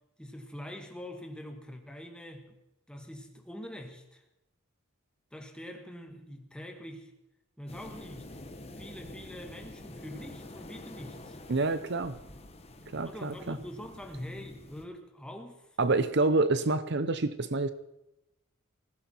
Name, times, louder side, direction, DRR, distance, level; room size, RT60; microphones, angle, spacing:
voice 1, 0.2-2.5 2.9-4.2 5.3-7.1 7.6-8.5 8.8-11.4 13.0-15.7, left 1 dB, 5° left, 4 dB, 1.9 m, -44 dB
sound 1, 7.7-14.8, left 1 dB, 30° left, 1.3 m, -48 dB
voice 2, 11.5-12.1 12.9-13.6 15.8-17.7, right 3 dB, 55° right, 12 dB, 0.8 m, -27 dB
19.0 x 16.0 x 4.6 m, 0.90 s
head